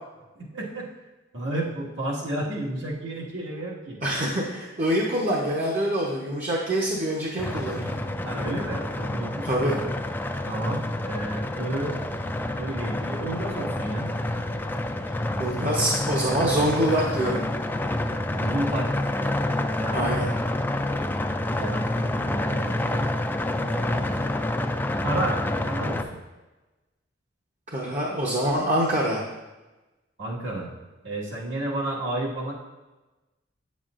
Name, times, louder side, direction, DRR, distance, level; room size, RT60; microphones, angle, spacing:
voice 1, 0.4-0.9 1.3-4.0 8.2-9.8 10.5-12.0 12.6-14.1 18.2-18.9 19.8-20.3 21.6-23.1 23.6-24.3 25.0-25.4 25.7-26.2 30.2-30.7 31.0-32.5, right 1 dB, 70° right, -5 dB, 1.7 m, -31 dB
voice 2, 4.0-8.0 9.4-9.7 15.4-17.5 19.9-20.3 27.7-29.2, right 1 dB, 40° right, -3 dB, 0.9 m, -25 dB
sound 1, 7.4-26.0, left 1 dB, 10° left, 0.3 m, -28 dB
8.4 x 7.2 x 2.5 m, 1.1 s
head